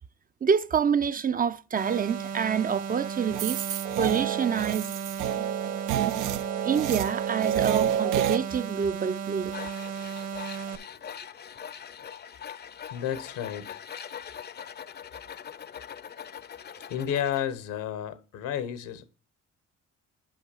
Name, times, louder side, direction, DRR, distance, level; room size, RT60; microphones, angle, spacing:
voice 1, 0.4-3.6 4.0-4.9 6.6-9.6, right 7 dB, 30° right, 0.4 m, -27 dB
sound 1, 1.8-10.8, right 7 dB, 55° right, 1.2 m, -35 dB
sound 2, 3.3-8.4, right 10 dB, 90° right, 0.5 m, -29 dB
Tools, 9.5-17.5, left 8 dB, 35° left, 0.5 m, -42 dB
voice 2, 12.9-13.8 16.9-19.0, left 9 dB, 90° left, 1.1 m, -31 dB
5.7 x 5.3 x 6.7 m
cardioid pair, 90°, 30 cm